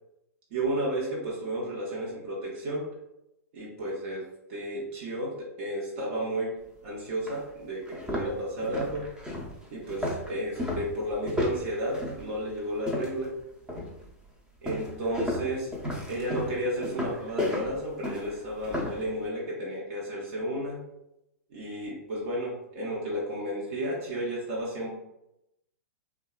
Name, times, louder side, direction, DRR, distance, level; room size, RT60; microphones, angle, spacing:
voice 1, 0.5-2.9 3.5-9.1 9.7-13.4 14.6-15.7 16.1-20.8 21.5-24.9, right 1 dB, 55° right, -4 dB, 0.8 m, -32 dB
sound 1, 6.7-6.8 7.3-7.4 7.8-13.3 13.7-14.1 14.7-19.0, left 1 dB, 10° right, 0.6 m, -33 dB
2.7 x 2.3 x 2.3 m, 0.86 s
hypercardioid pair, 115°, 8 cm